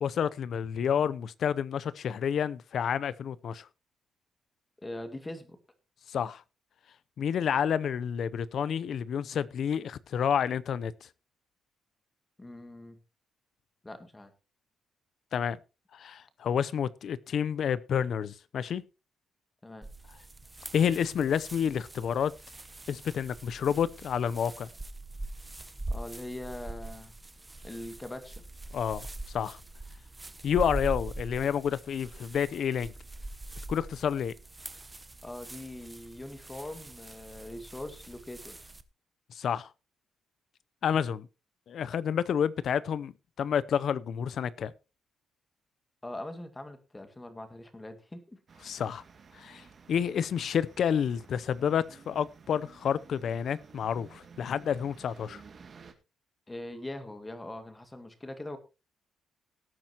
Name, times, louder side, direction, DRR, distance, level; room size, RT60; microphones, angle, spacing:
voice 1, 0.0-3.7 6.1-6.4 7.2-10.9 15.3-15.6 15.9-18.8 20.7-22.3 22.9-24.7 28.7-29.6 30.4-32.9 33.7-34.3 39.3-39.7 40.8-41.3 41.7-43.1 43.4-44.7 48.6-49.0 49.3-55.4, left 8 dB, 60° left, 0.6 m, -29 dB
voice 2, 4.8-5.6 12.4-13.0 13.8-14.3 19.6-19.9 25.9-27.1 27.6-28.4 35.2-38.6 46.0-48.4 56.5-58.6, left 1 dB, 15° left, 2.1 m, -42 dB
sound 1, 19.8-38.8, right 2 dB, 15° right, 1.0 m, -43 dB
sound 2, 48.5-55.9, right 5 dB, 45° right, 2.1 m, -54 dB
18.0 x 9.0 x 3.0 m
cardioid pair, 105°, 0 cm